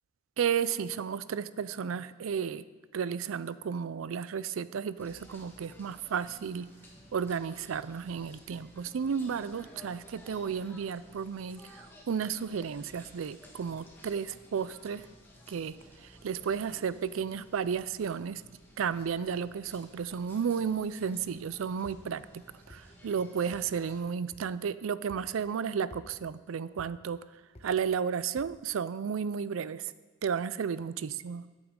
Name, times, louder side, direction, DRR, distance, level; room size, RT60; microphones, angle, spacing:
voice 1, 0.4-2.6 2.9-6.7 7.1-15.1 15.5-15.8 16.0-18.4 18.8-27.2 27.6-29.9 30.2-31.4, right 7 dB, 80° right, 16 dB, 0.4 m, -33 dB
sound 1, 5.0-24.0, equal, 10° left, 1.4 m, -55 dB
sound 2, 21.8-22.0 22.7-22.8 23.5-23.7 24.3-24.5 25.1-25.3 25.9-26.1 26.8-26.9 27.6-27.7 28.4-28.6, left 1 dB, 30° left, 1.0 m, -50 dB
14.0 x 8.8 x 3.7 m, 1.4 s
head